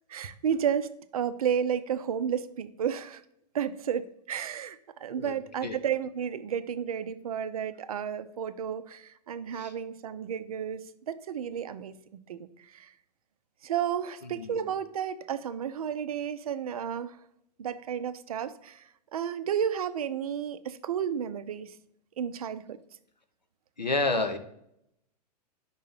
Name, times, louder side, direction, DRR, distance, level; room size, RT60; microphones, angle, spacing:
voice 1, 0.1-3.2 3.5-12.9 13.6-17.2 17.6-21.8 22.2-22.8, right 8 dB, 60° right, 13 dB, 0.5 m, -32 dB
voice 2, 23.8-24.4, left 2 dB, 85° left, 7 dB, 0.7 m, -29 dB
5.5 x 3.7 x 5.3 m, 0.76 s
figure-of-eight pair, 100°, 21 cm